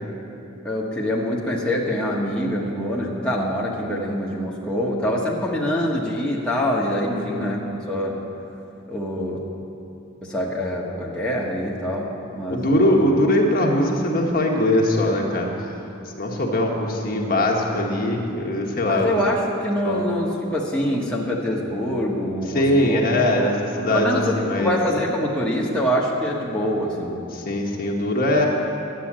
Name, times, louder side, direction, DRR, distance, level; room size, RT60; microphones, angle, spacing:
voice 1, 0.6-7.6 7.9-8.2 8.9-9.4 10.2-12.9 18.9-23.0 23.9-27.2, equal, 5° left, -5 dB, 1.3 m, -25 dB
voice 2, 7.1-7.4 12.5-15.5 16.2-19.2 19.8-20.1 22.5-24.7 27.3-28.5, left 1 dB, 45° left, -1 dB, 1.4 m, -21 dB
11.5 x 9.3 x 7.4 m, 2.7 s
head